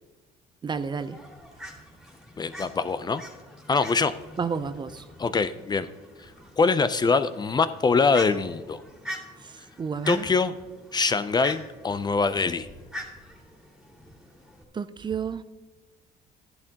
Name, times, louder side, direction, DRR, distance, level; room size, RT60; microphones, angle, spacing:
voice 1, 0.6-1.2 4.4-5.0 9.8-10.3 14.7-15.4, right 6 dB, 25° right, 13 dB, 0.5 m, -30 dB
Fowl, 1.0-14.6, equal, ahead, 2.6 m, -44 dB
voice 2, 2.4-3.2 3.7-4.1 5.2-5.9 6.2-8.8 10.1-10.6 10.9-12.7, left 4 dB, 25° left, 12 dB, 0.5 m, -24 dB
13.5 x 11.0 x 2.9 m, 1.2 s
cardioid pair, 110°, 17 cm